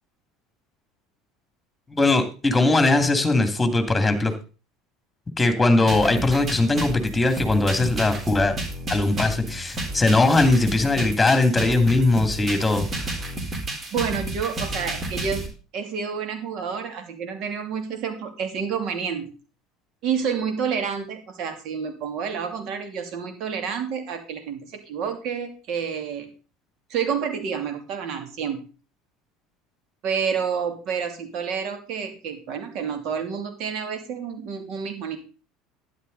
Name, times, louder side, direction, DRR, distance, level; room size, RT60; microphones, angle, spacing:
voice 1, 1.9-4.3 5.4-8.6 8.9-13.1, left 2 dB, 15° left, 7 dB, 2.6 m, -20 dB
sound 1, 5.9-15.5, right 1 dB, 30° right, 4.0 m, -31 dB
voice 2, 13.9-15.5 15.7-19.3 20.0-26.3 26.9-28.7 30.0-35.2, right 7 dB, 55° right, 6 dB, 2.8 m, -29 dB
12.5 x 10.0 x 4.0 m, 0.35 s
hypercardioid pair, 75°, 0 cm